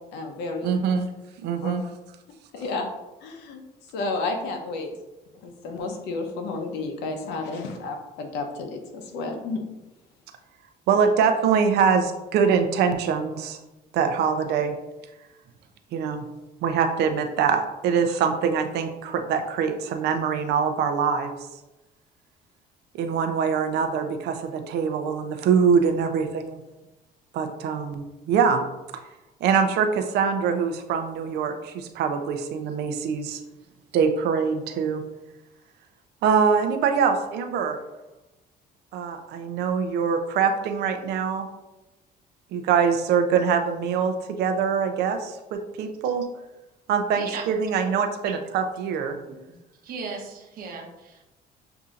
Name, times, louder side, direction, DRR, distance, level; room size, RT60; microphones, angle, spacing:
voice 1, 0.1-0.8 1.6-1.7 2.5-2.9 3.2-3.6 3.9-4.9 5.4-9.6, left 3 dB, 90° left, 4 dB, 0.8 m, -31 dB
voice 2, 0.6-1.1 1.4-1.8 10.9-13.6 13.9-14.8 15.9-16.2 16.6-21.3 22.9-26.6 27.3-28.6 29.4-33.4 33.9-35.0 36.2-37.8 38.9-41.5 42.5-46.3 46.9-49.2, right 6 dB, 75° right, 7 dB, 0.6 m, -23 dB
voice 3, 49.8-51.2, right 5 dB, 60° right, 1 dB, 0.9 m, -36 dB
6.8 x 2.7 x 2.5 m, 1.0 s
cardioid pair, 110°, 17 cm